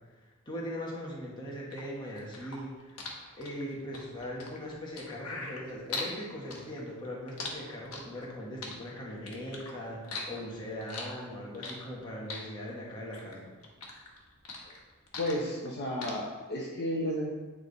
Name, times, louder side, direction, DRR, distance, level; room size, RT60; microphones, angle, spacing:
voice 1, 0.4-3.0 3.4-13.5, equal, 20° left, -5 dB, 1.4 m, -40 dB
sound 1, 1.7-6.1 6.5-8.3 8.6-9.7 10.0-12.0 12.3-13.4 13.6-15.7 16.0-16.1, left 3 dB, 80° left, 1.2 m, -40 dB
voice 2, 15.2-17.3, left 1 dB, 50° left, -3 dB, 1.0 m, -33 dB
9.1 x 3.6 x 4.0 m, 1.3 s
head